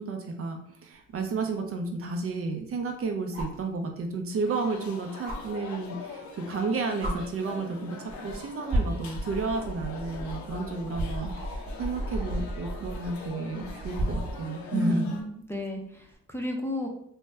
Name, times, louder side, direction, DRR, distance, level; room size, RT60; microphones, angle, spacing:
voice 1, 0.0-15.2, right 3 dB, 50° right, 4 dB, 0.5 m, -32 dB
sound 1, 1.1-1.2 3.3-3.6 5.2-5.4 6.5-6.6 7.0-7.1 8.1-8.3 8.7-14.4 16.0-16.1, right 1 dB, 30° right, 0.8 m, -33 dB
sound 2, 4.4-15.2, left 4 dB, 70° left, 0.6 m, -43 dB
voice 2, 14.7-16.9, left 1 dB, 10° left, 0 dB, 0.5 m, -32 dB
2.6 x 2.1 x 3.2 m, 0.69 s
cardioid pair, 90°, 30 cm